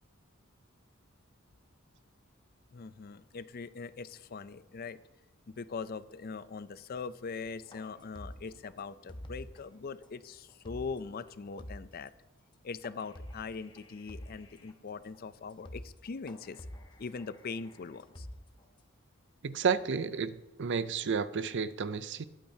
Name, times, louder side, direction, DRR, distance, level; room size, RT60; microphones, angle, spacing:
voice 1, 2.7-5.0 5.5-12.1 12.6-16.6 17.0-18.3, left 5 dB, 45° left, 14 dB, 0.4 m, -41 dB
sound 1, 7.7-9.6 10.0-10.1 10.5-11.0 11.3-11.4 11.6-12.1 12.8-14.7 15.1-15.2 15.5-16.0 16.3-18.8, left 1 dB, 20° left, 1.0 m, -48 dB
voice 2, 19.4-22.2, right 6 dB, 60° right, 14 dB, 0.5 m, -31 dB
20.5 x 8.7 x 2.8 m, 1.1 s
head